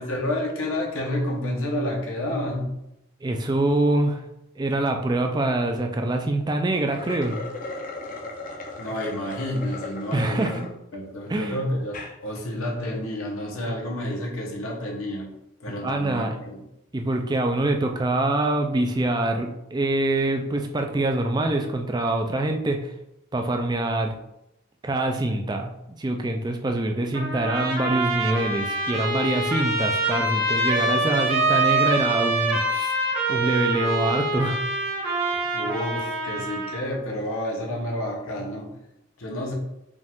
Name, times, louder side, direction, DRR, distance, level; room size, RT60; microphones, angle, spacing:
voice 1, 0.0-2.6 8.8-10.5 10.9-15.3 15.6-16.6 35.5-38.7 39.2-39.5, left 1 dB, 80° left, -1 dB, 0.9 m, -29 dB
voice 2, 3.2-4.2 4.6-7.4 10.1-10.7 11.3-11.6 15.8-16.4 16.9-22.9 23.3-24.1 24.8-25.7 26.0-32.9 33.3-34.6, right 2 dB, 20° right, 4 dB, 0.4 m, -25 dB
sound 1, 6.8-10.7 11.2-11.3 11.8-12.2, left 2 dB, 40° left, 0.5 m, -37 dB
Trumpet, 27.1-36.8, right 2 dB, 75° right, 1.3 m, -25 dB
5.1 x 2.4 x 3.5 m, 0.85 s
head